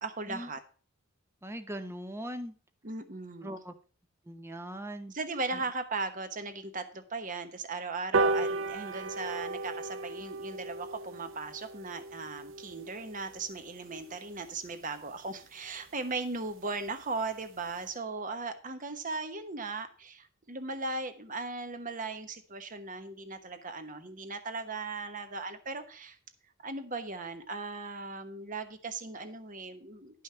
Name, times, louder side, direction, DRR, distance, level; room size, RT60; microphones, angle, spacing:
voice 1, 0.0-0.6 2.8-3.6 5.1-26.2 26.6-30.2, right 3 dB, 40° right, 8 dB, 1.2 m, -38 dB
voice 2, 1.4-2.5 3.4-3.7 4.3-5.1, equal, 15° right, 9 dB, 0.8 m, -40 dB
sound 1, 8.1-14.9 15.3-15.4 15.7-15.8 16.1-16.2 16.5-16.6 16.9-17.2 17.6-17.7, right 3 dB, 70° right, 0.6 m, -35 dB
11.0 x 5.6 x 5.6 m, 0.39 s
head